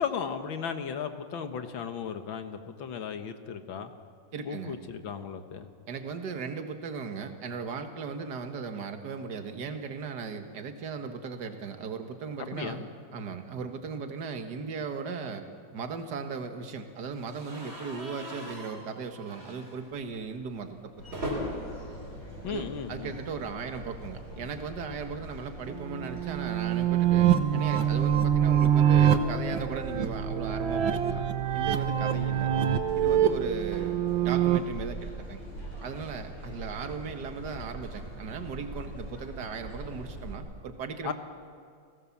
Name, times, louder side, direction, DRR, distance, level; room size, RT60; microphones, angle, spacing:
voice 1, 0.0-3.9 4.5-5.7 12.4-12.9 22.4-23.1 41.0-41.1, left 7 dB, 85° left, 8 dB, 2.1 m, -35 dB
voice 2, 4.3-4.8 5.9-12.8 13.1-15.5 15.7-20.9 22.5-31.2 31.5-32.5 32.9-35.4 35.8-41.1, right 5 dB, 60° right, 6 dB, 2.1 m, -37 dB
sound 1, 17.3-23.3 23.6-23.8 24.1-24.2 25.4-27.8, equal, 30° right, 4.1 m, -41 dB
sound 2, 21.0-40.3, right 1 dB, 45° left, 7.2 m, -42 dB
sound 3, 25.7-34.6, right 9 dB, 85° right, 1.9 m, -25 dB
30.0 x 18.0 x 7.3 m, 2.2 s
omnidirectional pair, 2.1 m